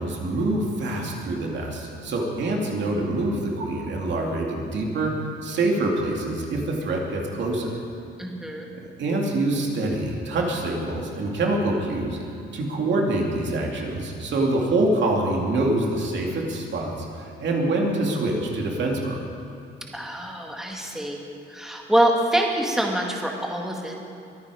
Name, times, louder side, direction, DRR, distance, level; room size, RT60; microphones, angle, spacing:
voice 1, 0.0-5.1 5.4-7.8 8.8-12.2 12.5-19.2, right 2 dB, 65° right, 0 dB, 2.7 m, -25 dB
voice 2, 8.2-8.7 19.9-21.2 21.5-23.9, right 1 dB, ahead, 0 dB, 2.1 m, -25 dB
22.5 x 9.6 x 5.1 m, 2.8 s
cardioid pair, 90°, 20 cm